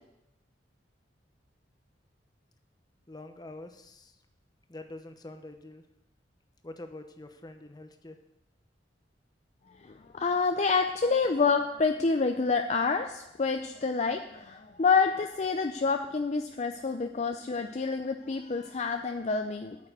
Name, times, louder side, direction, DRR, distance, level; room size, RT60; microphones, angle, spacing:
voice 1, 3.1-4.2 4.7-5.8 6.6-8.2, left 2 dB, 20° left, 7 dB, 0.9 m, -45 dB
voice 2, 9.8-19.8, left 4 dB, 40° left, 6 dB, 0.5 m, -28 dB
8.9 x 6.8 x 8.4 m, 0.88 s
head